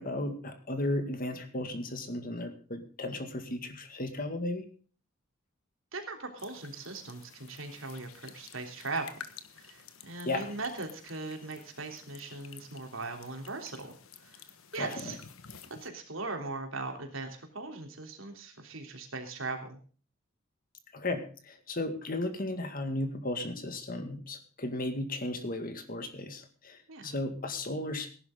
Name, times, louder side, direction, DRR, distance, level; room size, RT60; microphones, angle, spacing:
voice 1, 0.0-4.7 10.2-10.5 14.8-15.2 20.9-28.1, left 1 dB, 40° left, 8 dB, 2.0 m, -35 dB
voice 2, 5.9-9.1 9.5-13.9 14.2-14.4 14.7-15.2 15.8-19.8 26.9-27.1, right 3 dB, 70° right, 3 dB, 3.3 m, -39 dB
sound 1, 6.4-15.9, left 7 dB, 80° left, 1.5 m, -52 dB
17.5 x 11.0 x 3.8 m, 0.39 s
head